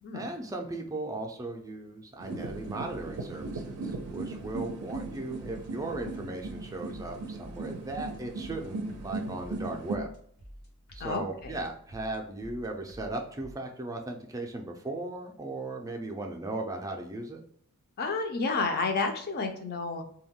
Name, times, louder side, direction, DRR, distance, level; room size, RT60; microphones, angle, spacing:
voice 1, 0.1-10.1 10.9-17.4, right 2 dB, 15° right, 2 dB, 0.4 m, -37 dB
sound 1, 2.2-10.0, right 3 dB, 80° right, 0.4 m, -38 dB
sound 2, 2.4-13.5, equal, 90° left, 1.1 m, -50 dB
voice 2, 11.0-11.5 18.0-20.0, left 3 dB, 45° left, 5 dB, 0.5 m, -30 dB
2.2 x 2.1 x 3.5 m, 0.63 s
head